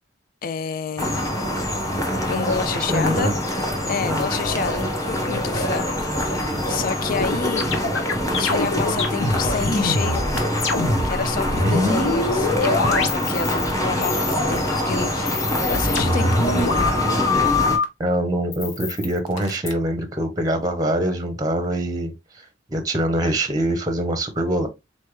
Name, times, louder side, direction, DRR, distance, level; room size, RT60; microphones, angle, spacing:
voice 1, 0.4-1.2 2.2-3.3 3.9-5.9 6.7-7.7 8.4-10.3 11.0-16.9, left 6 dB, 45° left, 0.3 m, -28 dB
sound 1, 1.0-17.8, equal, 15° left, 1.1 m, -24 dB
voice 2, 2.9-3.3 4.0-4.2 11.6-12.0 18.0-24.7, right 1 dB, 20° right, 0.7 m, -24 dB
sound 2, 7.2-11.1 11.4-13.7 14.0-14.7 15.1-17.8 18.5-19.7, left 3 dB, 75° left, 1.0 m, -24 dB
4.1 x 3.3 x 3.2 m
head